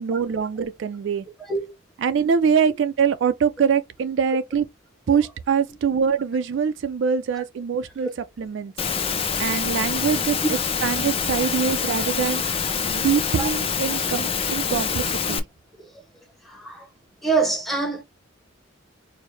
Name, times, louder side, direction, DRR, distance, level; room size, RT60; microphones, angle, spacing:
voice 1, 0.0-1.2 2.0-4.7 5.1-8.1 8.4-8.7 9.4-10.4 10.8-12.4 12.9-15.4, right 6 dB, 65° right, 0.3 m, -23 dB
voice 2, 1.4-1.7 5.1-5.2 9.4-9.6 10.4-10.5 13.4-13.5 15.8-15.9 16.4-16.9 17.2-18.0, right 4 dB, ahead, 0.8 m, -25 dB
Engine / Mechanisms, 8.8-15.4, left 6 dB, 30° left, 0.4 m, -25 dB
4.5 x 2.0 x 3.1 m
head